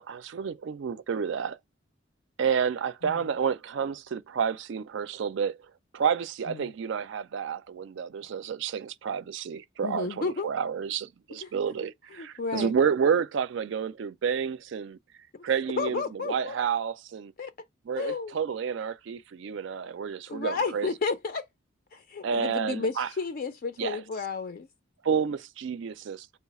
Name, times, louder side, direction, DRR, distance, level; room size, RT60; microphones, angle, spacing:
voice 1, 0.0-1.6 2.4-5.6 5.9-15.0 15.4-17.3 17.9-20.9 22.2-23.1 23.8-24.0 25.0-26.3, right 7 dB, 65° right, 0.4 m, -30 dB
voice 2, 9.8-10.5 11.4-11.6 12.1-12.7 15.3-16.6 17.4-17.5 17.9-18.4 20.3-21.5 21.9-24.7, left 4 dB, 50° left, 0.4 m, -32 dB
4.0 x 2.4 x 4.0 m
head